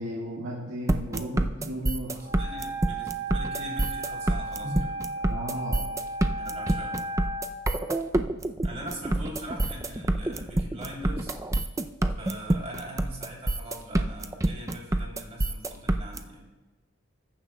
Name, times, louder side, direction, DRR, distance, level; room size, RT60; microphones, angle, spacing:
voice 1, 0.0-2.1 4.6-4.9 5.2-5.9, equal, 70° right, -4 dB, 1.8 m, -34 dB
sound 1, 0.9-16.2, right 1 dB, 15° right, 0.4 m, -26 dB
voice 2, 2.0-5.0 6.4-7.0 8.6-11.4 12.2-16.4, right 1 dB, 35° right, -2 dB, 3.1 m, -41 dB
Wind instrument woodwind instrument, 2.2-7.5, right 2 dB, 75° left, 3.5 m, -35 dB
20.5 x 10.0 x 2.2 m, 1.2 s
head